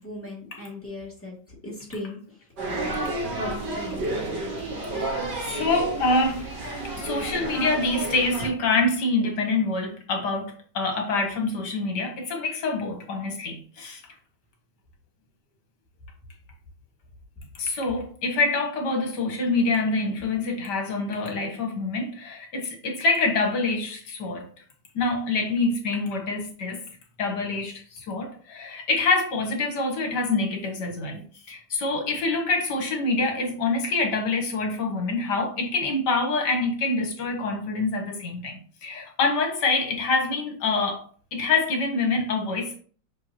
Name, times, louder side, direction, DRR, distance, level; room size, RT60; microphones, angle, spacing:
voice 1, 0.0-1.3 1.6-2.2 3.3-4.1, left 1 dB, 5° left, 2.4 m, -36 dB
sound 1, 2.6-8.5, right 2 dB, 65° right, 2.1 m, -31 dB
voice 2, 5.4-6.5 7.0-14.0 17.6-24.5 25.0-26.8 27.2-27.8 28.1-31.2 31.5-41.0 41.3-42.8, left 3 dB, 65° left, 1.9 m, -26 dB
5.7 x 5.5 x 3.0 m
omnidirectional pair, 2.0 m